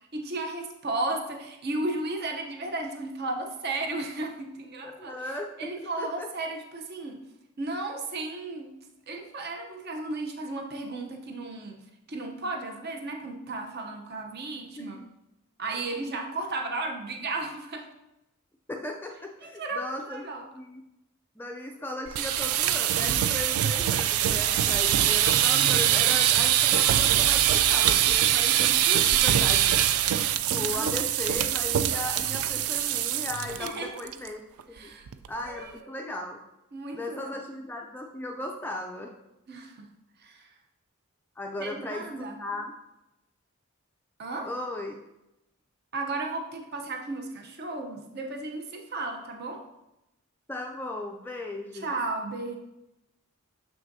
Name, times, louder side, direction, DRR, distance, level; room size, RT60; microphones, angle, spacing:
voice 1, 0.1-5.2 5.6-7.2 7.6-8.7 9.1-11.8 12.1-15.0 15.6-17.9 19.4-20.4 25.5-25.8 30.6-31.1 33.6-33.9 34.7-35.1 35.4-36.1 36.7-37.4 39.5-39.9 40.2-40.5 41.6-42.4 44.2-44.5 45.9-49.6 51.7-52.6, right 2 dB, 50° right, 3 dB, 0.7 m, -34 dB
voice 2, 4.9-6.3 14.8-15.0 18.7-20.2 20.5-20.8 21.4-29.8 30.4-34.4 34.7-34.9 35.3-36.4 36.9-39.1 41.4-42.7 44.4-44.9 50.5-52.0, left 2 dB, 10° left, 1 dB, 0.3 m, -37 dB
sound 1, 22.1-33.7 34.0-34.3 34.6-34.7 35.1-35.5, right 11 dB, 85° right, 0.3 m, -23 dB
6.9 x 6.1 x 2.6 m, 0.92 s
head